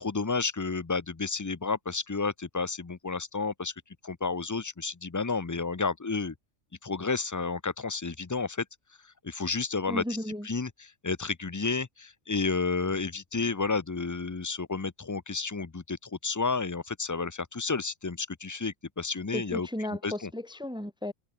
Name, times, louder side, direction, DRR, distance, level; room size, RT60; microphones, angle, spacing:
voice 1, 0.0-3.7 4.0-6.3 6.8-8.6 9.2-10.0 10.4-19.7 20.0-20.3, left 4 dB, 25° left, 0.4 m, -31 dB
voice 2, 9.9-10.5 19.3-21.1, left 1 dB, 5° right, 0.9 m, -34 dB
omnidirectional pair, 1.3 m